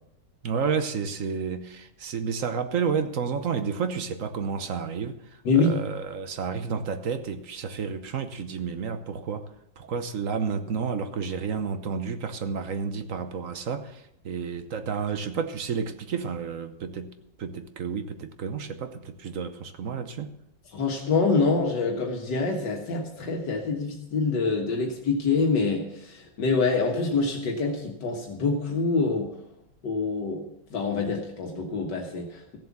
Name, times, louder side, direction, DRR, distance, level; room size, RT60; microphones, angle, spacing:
voice 1, 0.4-9.5 9.8-17.1 17.4-20.3, right 6 dB, 55° right, 1.2 m, -31 dB
voice 2, 5.5-5.8 20.7-29.3 29.8-30.4 30.7-32.6, left 4 dB, 80° left, 2.1 m, -26 dB
15.5 x 7.7 x 7.3 m
omnidirectional pair, 1.9 m